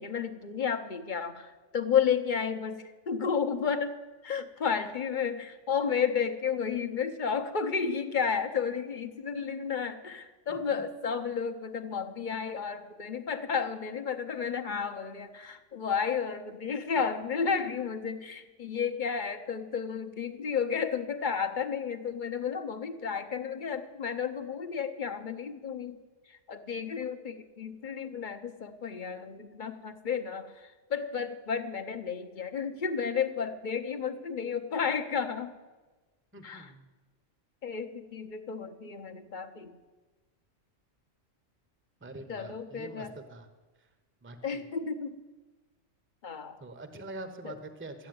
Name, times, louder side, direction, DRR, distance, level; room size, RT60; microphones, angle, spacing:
voice 1, 0.0-4.0 4.2-26.0 26.3-35.5 36.4-36.7 37.6-39.7 42.3-43.1 44.4-45.2 46.2-46.6 47.4-47.6, left 6 dB, 40° left, 7 dB, 0.9 m, -32 dB
voice 2, 10.5-10.8 36.3-36.9 42.0-43.5 44.2-44.7 46.6-48.1, right 2 dB, 10° right, 8 dB, 0.9 m, -45 dB
13.5 x 8.5 x 9.4 m, 1.2 s
omnidirectional pair, 1.4 m